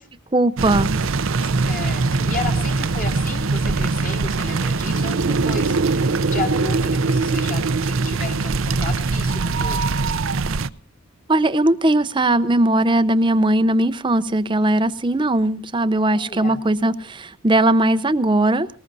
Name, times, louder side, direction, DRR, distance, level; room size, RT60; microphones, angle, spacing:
voice 1, 0.3-0.9 11.3-18.7, right 1 dB, 20° right, 14 dB, 0.6 m, -19 dB
sound 1, 0.6-10.7, right 3 dB, 70° right, 0.6 m, -22 dB
voice 2, 1.4-9.8 16.0-16.6, left 3 dB, 40° left, 1 dB, 2.7 m, -33 dB
20.0 x 19.5 x 2.7 m, 0.44 s
head